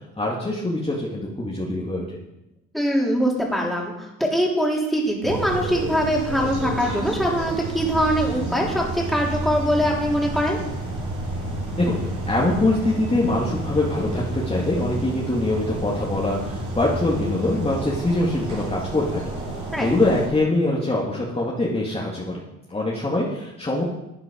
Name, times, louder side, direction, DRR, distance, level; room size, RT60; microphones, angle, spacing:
voice 1, 0.2-2.2 11.8-12.0 12.3-19.3 19.8-22.4 22.7-23.8, left 2 dB, 20° left, -4 dB, 2.1 m, -23 dB
voice 2, 2.7-10.6 19.7-19.9, equal, ahead, -2 dB, 3.2 m, -22 dB
sound 1, 5.2-20.3, right 1 dB, 75° right, 5.3 m, -30 dB
12.0 x 8.7 x 5.2 m, 0.91 s
cardioid pair, 90°, 30 cm